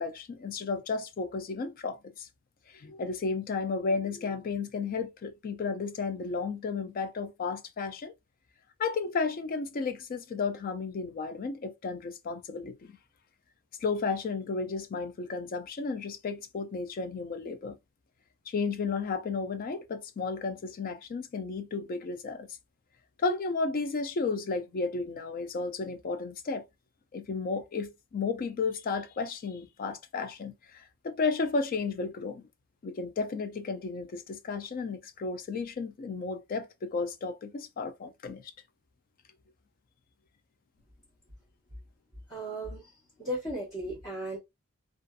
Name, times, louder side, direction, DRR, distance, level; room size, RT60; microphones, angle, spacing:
voice 1, 0.0-2.3 2.7-8.1 8.8-13.0 13.8-17.8 18.5-22.5 23.2-26.6 27.1-32.5 32.8-38.5, left 4 dB, 40° left, 0.3 m, -33 dB
voice 2, 42.3-42.9 43.2-44.4, right 1 dB, 20° left, 1.0 m, -35 dB
2.6 x 2.4 x 2.3 m
head